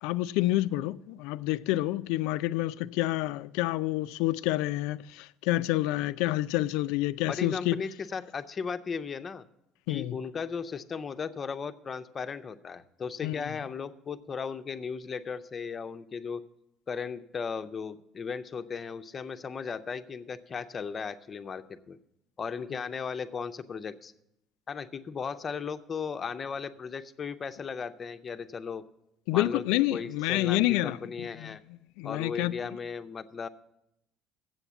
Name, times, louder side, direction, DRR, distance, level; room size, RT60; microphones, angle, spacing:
voice 1, 0.0-7.8 9.9-10.1 13.2-13.3 29.3-31.5 32.0-32.5, left 17 dB, 85° left, 0.3 m, -28 dB
voice 2, 7.3-9.5 9.9-16.4 16.9-22.0 22.4-24.1 24.7-28.8 29.3-31.6 32.0-33.5, left 6 dB, 35° left, 0.5 m, -36 dB
7.7 x 7.2 x 8.0 m
cardioid pair, 110°, 0 cm